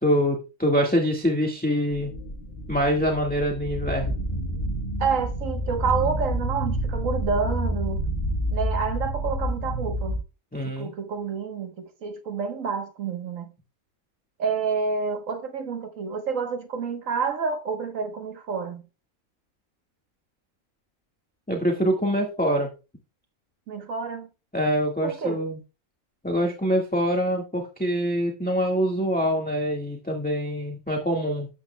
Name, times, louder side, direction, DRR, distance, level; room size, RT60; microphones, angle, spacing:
voice 1, 0.0-2.1 2.7-4.1 10.5-10.9 21.5-22.7 24.5-25.6 26.2-31.5, equal, 5° left, 1.5 m, -24 dB
sound 1, 2.0-10.2, equal, 45° left, 1.6 m, -29 dB
voice 2, 5.0-8.0 8.5-10.2 10.6-13.5 14.4-18.8 23.7-24.3 25.0-25.4, right 5 dB, 65° right, 1.5 m, -29 dB
13.0 x 8.7 x 2.2 m
omnidirectional pair, 1.5 m